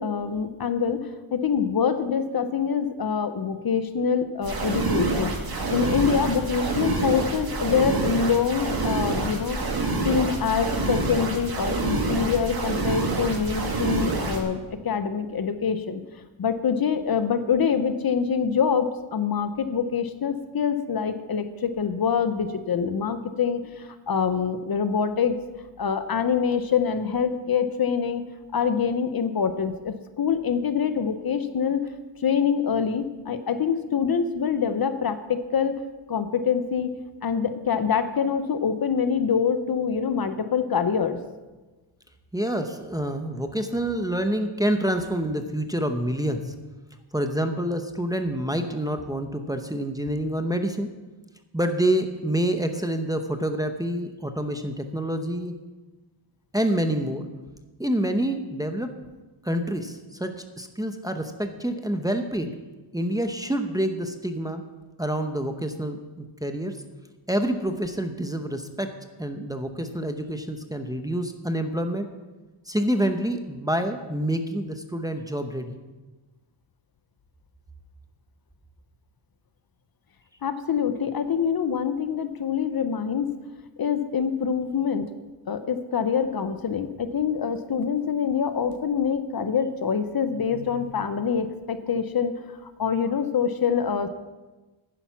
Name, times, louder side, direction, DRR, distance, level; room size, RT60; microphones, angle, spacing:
voice 1, 0.0-5.4 5.7-9.6 10.0-16.0 16.4-25.4 25.8-28.2 28.5-31.8 32.2-35.8 36.1-36.9 37.2-41.2 80.4-83.3 83.8-85.1 85.5-92.3 92.6-94.1, left 7 dB, 45° left, 10 dB, 0.8 m, -25 dB
sound 1, 4.4-14.4, right 3 dB, 45° right, 2.2 m, -27 dB
voice 2, 42.3-46.6 47.1-50.9 51.5-55.5 56.5-57.3 57.8-58.9 59.4-62.5 62.9-64.6 65.0-66.8 67.3-72.1 72.7-75.8, right 1 dB, 10° right, 6 dB, 0.8 m, -27 dB
10.5 x 10.0 x 5.8 m, 1.2 s
wide cardioid pair, 130°, 49 cm